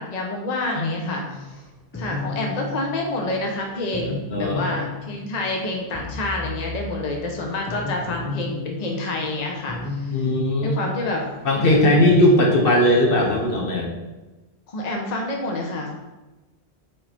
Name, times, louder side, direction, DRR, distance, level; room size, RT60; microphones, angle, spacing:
voice 1, 0.0-1.5 1.9-10.3 10.6-11.3 11.5-12.0 14.7-16.0, left 2 dB, 40° left, 0 dB, 0.9 m, -28 dB
voice 2, 0.8-1.1 4.3-4.6 10.1-10.8 11.4-13.9, left 1 dB, 60° left, 0 dB, 1.1 m, -18 dB
sound 1, 1.3-13.5, left 3 dB, 15° left, 0.5 m, -34 dB
4.9 x 4.5 x 4.3 m, 1.1 s
omnidirectional pair, 1.1 m